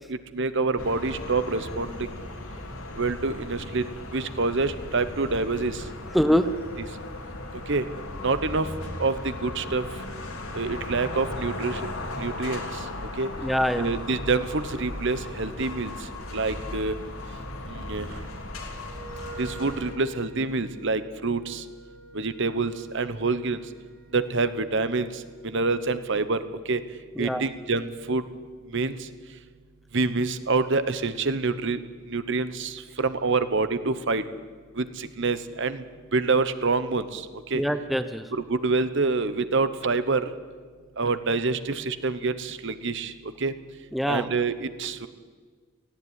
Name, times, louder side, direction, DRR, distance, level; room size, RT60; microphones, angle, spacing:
voice 1, 0.1-2.1 3.0-5.8 7.7-7.8 8.2-8.7 9.0-9.8 10.5-11.8 12.2-12.6 13.2-13.3 13.8-15.9 16.3-16.9 17.7-18.2 19.4-21.6 22.1-23.6 24.1-26.4 26.7-26.8 27.2-28.2 28.7-29.0 29.9-31.8 32.1-34.2 34.8-35.8 36.1-37.6 38.3-40.3 41.0-43.5 44.1-45.1, right 3 dB, 60° right, 12 dB, 1.1 m, -26 dB
sound 1, 0.8-19.9, left 2 dB, 90° left, 3.5 m, -37 dB
voice 2, 6.1-6.5 13.4-13.9 27.2-27.4 37.5-38.3 43.9-44.3, equal, ahead, 10 dB, 0.7 m, -24 dB
Wind instrument woodwind instrument, 18.9-25.5, right 1 dB, 35° right, 3.8 m, -47 dB
18.5 x 15.5 x 9.7 m, 1.5 s
head